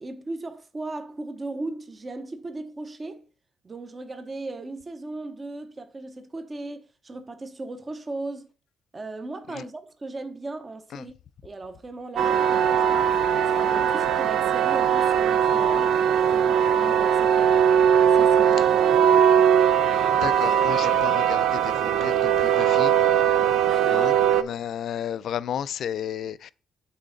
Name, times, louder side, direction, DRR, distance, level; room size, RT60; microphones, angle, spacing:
voice 1, 0.0-3.3 3.6-8.5 8.9-11.1 11.4-13.2 13.5-17.7 18.1-19.4 23.7-24.3, right 2 dB, 30° right, 0.8 m, -37 dB
sound 1, 12.2-24.4, right 8 dB, 75° right, 0.4 m, -20 dB
voice 2, 20.0-22.9 23.9-26.5, left 9 dB, 70° left, 0.3 m, -33 dB
8.3 x 4.1 x 3.9 m
cardioid pair, 90°, 0 cm